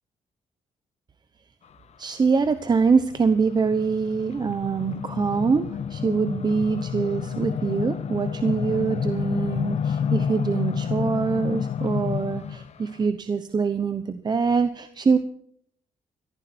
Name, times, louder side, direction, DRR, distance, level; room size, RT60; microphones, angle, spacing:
voice 1, 2.0-15.2, right 5 dB, 30° right, 11 dB, 0.9 m, -24 dB
sound 1, 2.3-12.7, left 7 dB, 55° left, 1.0 m, -29 dB
17.5 x 14.5 x 4.4 m, 0.64 s
cardioid pair, 115°, 13 cm